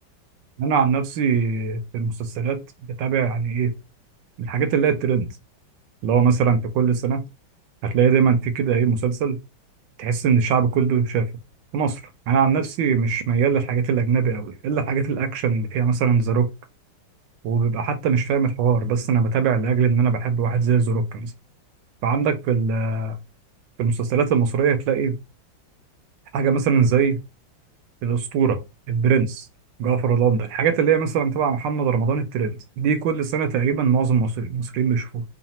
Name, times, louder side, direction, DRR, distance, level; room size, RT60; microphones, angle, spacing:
voice 1, 0.6-2.6 3.0-3.7 4.4-5.3 6.0-7.3 7.8-9.4 10.0-11.3 11.7-12.0 12.3-16.5 17.4-21.3 22.0-23.2 23.8-25.2 26.3-27.2 28.0-28.6 28.9-29.5 29.8-35.2, right 6 dB, 75° right, 1.3 m, -21 dB
3.9 x 2.2 x 4.2 m
omnidirectional pair, 2.1 m